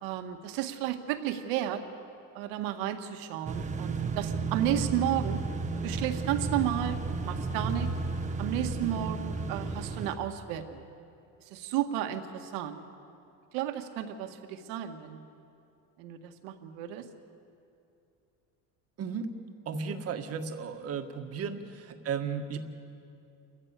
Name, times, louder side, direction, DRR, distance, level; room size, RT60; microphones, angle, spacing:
voice 1, 0.0-1.8 2.4-5.4 5.8-7.0 7.2-7.9 8.4-10.8 11.5-12.8 13.5-15.2 16.0-17.1, right 11 dB, 80° right, 6 dB, 1.8 m, -32 dB
sound 1, 3.4-10.2, right 3 dB, 20° right, 1.1 m, -33 dB
voice 2, 19.0-19.3 19.7-22.6, right 6 dB, 45° right, 6 dB, 1.7 m, -34 dB
29.0 x 14.5 x 8.3 m, 2.6 s
cardioid pair, 140°, 35 cm